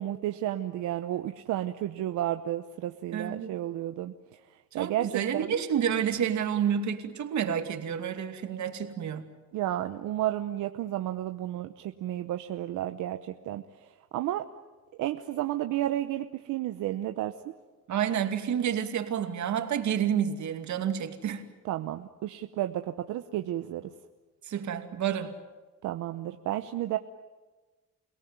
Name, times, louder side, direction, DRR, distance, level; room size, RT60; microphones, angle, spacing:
voice 1, 0.0-5.6 9.5-14.5 15.0-17.5 21.6-23.9 25.8-27.0, right 13 dB, 90° right, 8 dB, 1.0 m, -32 dB
voice 2, 3.1-3.5 4.7-9.2 17.9-21.4 24.4-25.3, right 8 dB, 70° right, 6 dB, 2.6 m, -29 dB
29.0 x 18.0 x 9.4 m, 1.3 s
cardioid pair, 90°, 30 cm